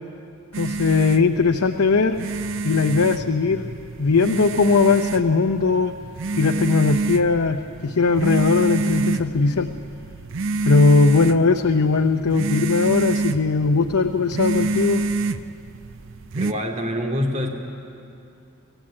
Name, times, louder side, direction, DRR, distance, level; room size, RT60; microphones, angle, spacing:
sound 1, 0.5-16.5, right 3 dB, 60° right, 0.7 m, -28 dB
voice 1, 0.6-2.2 2.6-3.7 4.0-5.9 6.4-9.7 10.6-15.0, left 4 dB, 75° left, 6 dB, 0.7 m, -19 dB
voice 2, 16.3-17.5, equal, 35° right, 2 dB, 2.5 m, -25 dB
25.5 x 15.5 x 8.8 m, 2.6 s
head